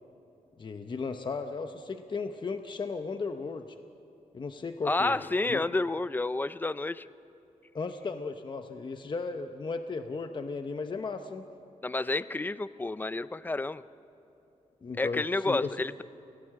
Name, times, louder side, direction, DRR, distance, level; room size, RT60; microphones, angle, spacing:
voice 1, 0.6-3.7 4.3-5.6 7.7-11.5 14.8-15.7, left 4 dB, 35° left, 7 dB, 0.8 m, -35 dB
voice 2, 4.8-7.1 11.8-13.8 15.0-16.0, left 2 dB, 15° left, 15 dB, 0.4 m, -30 dB
29.5 x 16.5 x 7.5 m, 2.9 s
wide cardioid pair, 150°, 13 cm